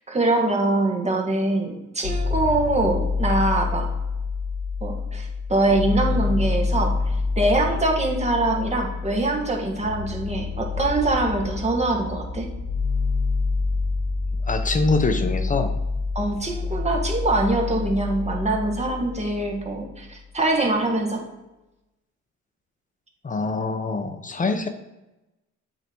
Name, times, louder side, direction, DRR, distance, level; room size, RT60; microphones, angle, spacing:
voice 1, 0.1-3.9 4.8-12.5 16.2-21.2, right 2 dB, 20° right, 0 dB, 1.8 m, -23 dB
sound 1, 2.0-20.0, left 4 dB, 85° left, 0.7 m, -27 dB
voice 2, 14.4-15.7 23.2-24.7, left 3 dB, 25° left, 8 dB, 0.9 m, -24 dB
7.9 x 3.9 x 4.7 m, 0.99 s
cardioid pair, 90°, 30 cm